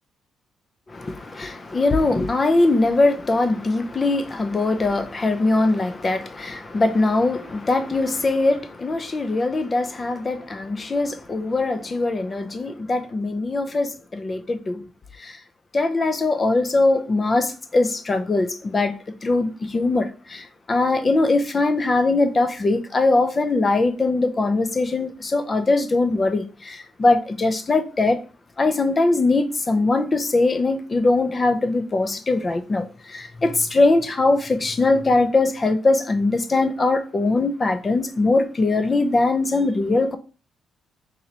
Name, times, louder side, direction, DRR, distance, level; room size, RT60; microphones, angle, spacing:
voice 1, 0.9-14.8 15.2-15.4 15.7-18.9 19.2-28.2 28.6-40.2, left 2 dB, 30° left, 0.5 m, -21 dB
3.9 x 3.0 x 2.8 m
cardioid pair, 90°, 0 cm